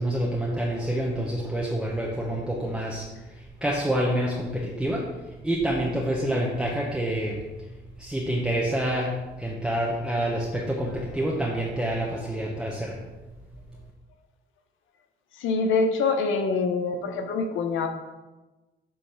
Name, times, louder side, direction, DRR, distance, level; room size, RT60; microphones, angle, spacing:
voice 1, 0.0-5.1 5.4-7.4 8.0-13.0, right 1 dB, 5° right, -3 dB, 1.0 m, -27 dB
voice 2, 15.4-17.9, left 4 dB, 80° left, 6 dB, 0.8 m, -25 dB
8.1 x 3.2 x 5.8 m, 1.1 s
cardioid pair, 90°, 20 cm